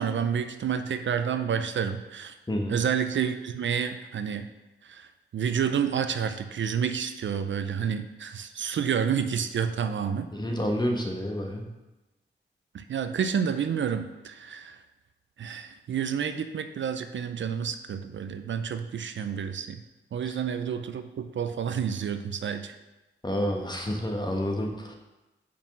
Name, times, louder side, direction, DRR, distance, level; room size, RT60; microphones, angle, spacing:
voice 1, 0.0-2.3 2.7-4.5 4.8-5.1 5.3-10.3 12.7-14.8 15.4-19.8 20.1-22.8, right 7 dB, 65° right, 10 dB, 0.5 m, -29 dB
voice 2, 2.5-2.8 10.3-11.6 23.2-24.9, equal, 20° left, 2 dB, 1.2 m, -29 dB
5.4 x 4.7 x 6.0 m, 1.1 s
cardioid pair, 65°, 21 cm